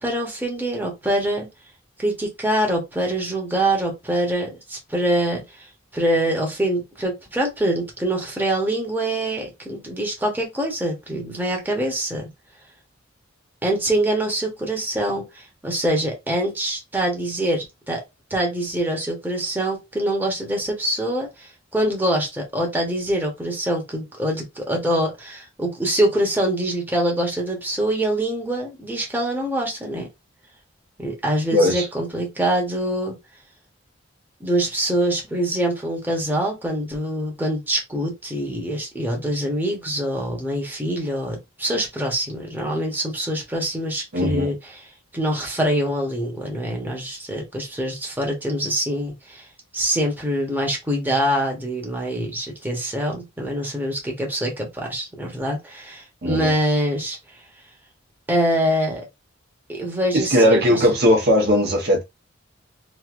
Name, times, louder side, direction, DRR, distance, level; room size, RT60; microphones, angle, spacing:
voice 1, 0.0-1.5 2.0-5.4 5.9-12.3 13.6-18.0 18.3-30.1 31.0-33.2 34.4-44.5 45.1-49.4 49.7-57.2 58.3-59.1 59.7-60.8, right 1 dB, 10° right, 1.0 m, -24 dB
voice 2, 31.5-31.9 44.1-44.5 56.2-56.5 60.1-62.0, equal, 55° right, 0.9 m, -18 dB
3.1 x 2.7 x 2.5 m
head